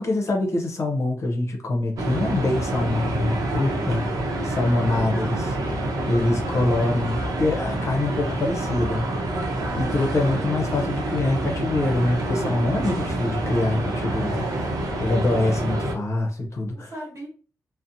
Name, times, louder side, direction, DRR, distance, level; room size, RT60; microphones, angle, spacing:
voice 1, 0.0-4.1 4.4-5.5 6.1-9.1 9.8-14.4 15.0-16.9, left 2 dB, 50° left, 0.6 m, -24 dB
sound 1, 2.0-15.9, right 1 dB, 80° right, 0.7 m, -27 dB
voice 2, 5.0-5.6 9.6-10.5 14.2-14.8 16.7-17.3, right 1 dB, 55° right, 1.2 m, -38 dB
2.7 x 2.1 x 2.6 m
wide cardioid pair, 110°, 6 cm